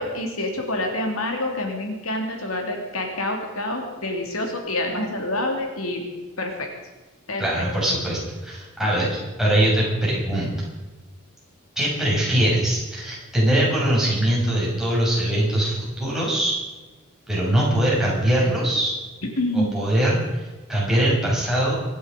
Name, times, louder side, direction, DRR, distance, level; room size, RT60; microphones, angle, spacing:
voice 1, 0.0-6.0 6.4-6.7 7.3-7.4 19.4-19.8, left 1 dB, 75° left, 2 dB, 3.1 m, -27 dB
voice 2, 7.4-10.5 11.8-16.6 17.3-19.0 19.5-20.4 20.7-21.7, right 1 dB, ahead, -6 dB, 6.5 m, -22 dB
24.5 x 11.0 x 5.3 m, 1.2 s
head